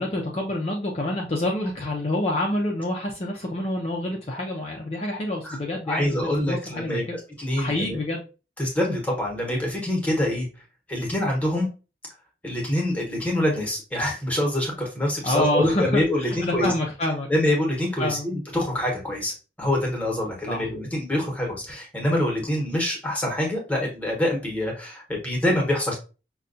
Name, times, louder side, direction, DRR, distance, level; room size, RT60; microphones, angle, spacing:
voice 1, 0.0-7.2 7.6-8.2 15.2-17.3 18.0-18.3 20.5-20.7, left 1 dB, 35° left, -1 dB, 0.5 m, -27 dB
voice 2, 5.9-8.0 8.6-10.5 10.9-11.7 12.4-16.7 17.3-26.0, left 1 dB, 10° left, 0 dB, 1.1 m, -25 dB
5.5 x 2.3 x 2.6 m, 0.33 s
head